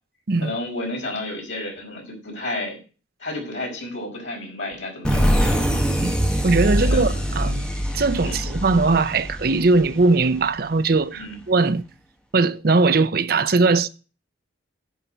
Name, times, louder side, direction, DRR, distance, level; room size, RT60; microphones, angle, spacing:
voice 1, 0.4-2.8 3.2-5.6 6.8-7.1 8.2-8.5 11.1-11.4, left 2 dB, 85° left, 5.3 m, -31 dB
sound 1, 5.0-10.6, equal, 5° left, 1.4 m, -23 dB
voice 2, 6.4-7.6 7.9-11.8 12.3-13.9, right 3 dB, 50° right, 0.6 m, -20 dB
10.0 x 5.8 x 6.6 m
head